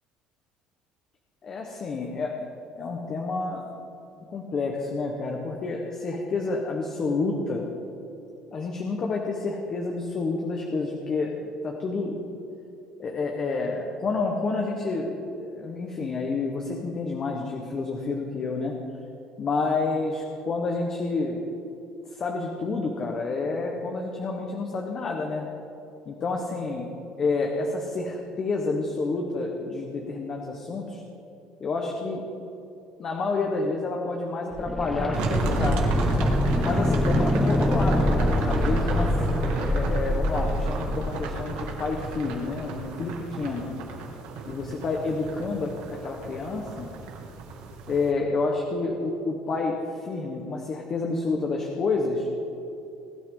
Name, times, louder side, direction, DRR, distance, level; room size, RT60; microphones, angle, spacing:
voice 1, 1.4-2.5 2.7-3.6 4.3-7.7 8.5-12.2 13.0-18.8 19.4-21.4 22.1-25.5 26.1-26.9 27.2-31.0 31.6-32.2 33.0-35.8 36.6-39.1 39.4-43.7 44.5-46.9 47.9-52.3, left 3 dB, 30° left, 1 dB, 1.2 m, -29 dB
sound 1, 34.5-42.3 42.6-42.7, left 1 dB, 5° left, 0.5 m, -25 dB
sound 2, 35.1-48.1, right 4 dB, 80° right, 2.4 m, -33 dB
21.0 x 12.5 x 3.9 m, 3.0 s
cardioid pair, 175°, 2 cm